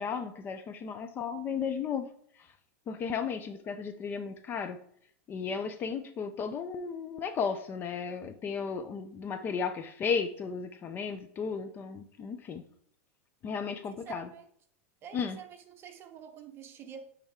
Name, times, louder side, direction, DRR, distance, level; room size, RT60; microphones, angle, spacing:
voice 1, 0.0-2.1 2.9-4.8 5.3-12.6 13.4-14.3 15.1-15.4, left 6 dB, 25° left, 0.5 m, -34 dB
voice 2, 14.0-14.5 15.0-17.0, right 8 dB, 30° right, 1.0 m, -47 dB
9.9 x 3.5 x 3.6 m
supercardioid pair, 135°, 8 cm